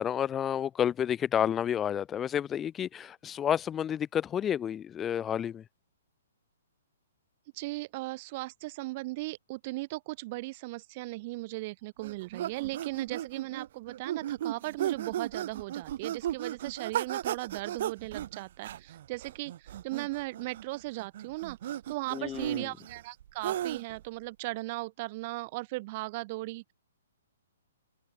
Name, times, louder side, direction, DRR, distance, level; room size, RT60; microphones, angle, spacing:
voice 1, 0.0-5.6 22.1-22.7, left 9 dB, 15° left, 2.4 m, -30 dB
voice 2, 7.5-26.7, right 21 dB, 40° right, 7.2 m, -37 dB
sound 1, 12.0-24.0, right 11 dB, 55° right, 4.1 m, -35 dB
hypercardioid pair, 140°, 0 cm